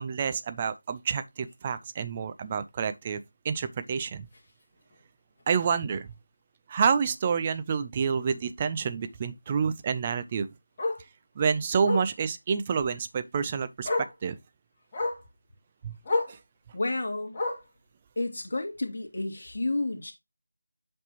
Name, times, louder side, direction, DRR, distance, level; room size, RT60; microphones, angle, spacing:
voice 1, 0.0-4.3 5.5-6.1 6.7-10.5 11.4-13.9 14.2-14.4 15.8-16.0 16.3-16.4, right 6 dB, 20° right, 0.5 m, -28 dB
Bark, 4.3-4.5 4.9-5.0 5.4-5.5 5.8-5.9 7.3-7.4 9.9-10.0 10.8-11.0 11.8-12.1 13.3-13.4 13.8-14.2 14.9-15.3 16.0-16.4 17.3-17.8 18.7-18.8, left 2 dB, 25° left, 2.1 m, -30 dB
voice 2, 16.7-17.4 18.2-20.1, left 2 dB, 45° left, 2.1 m, -31 dB
8.1 x 5.4 x 2.9 m
figure-of-eight pair, 165°, 0 cm